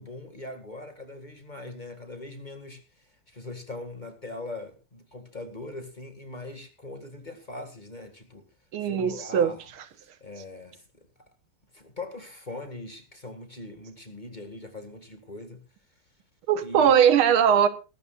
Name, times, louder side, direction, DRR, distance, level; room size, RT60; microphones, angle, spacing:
voice 1, 0.0-8.5 8.8-9.6 10.2-11.1 11.7-15.6 16.6-16.9, left 2 dB, 20° left, 2.0 m, -41 dB
voice 2, 8.7-9.5 16.5-17.7, right 8 dB, 80° right, 2.0 m, -20 dB
21.5 x 12.5 x 2.5 m
omnidirectional pair, 2.3 m